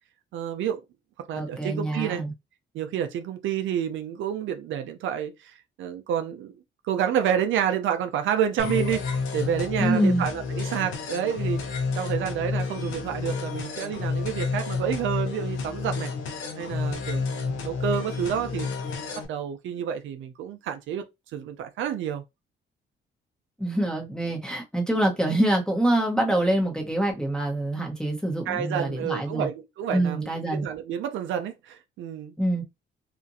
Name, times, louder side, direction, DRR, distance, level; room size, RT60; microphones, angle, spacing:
voice 1, 0.3-0.8 1.3-2.2 2.7-6.5 6.8-16.1 16.6-18.7 19.3-21.0 21.3-22.2 28.5-32.3, right 9 dB, 75° right, 0.5 m, -29 dB
voice 2, 1.3-2.3 9.8-10.3 23.6-29.5 29.9-30.7 32.4-32.6, right 1 dB, 5° left, 0.9 m, -25 dB
sound 1, 8.6-19.2, left 4 dB, 85° left, 0.7 m, -30 dB
2.8 x 2.5 x 2.6 m
cardioid pair, 90°, 20 cm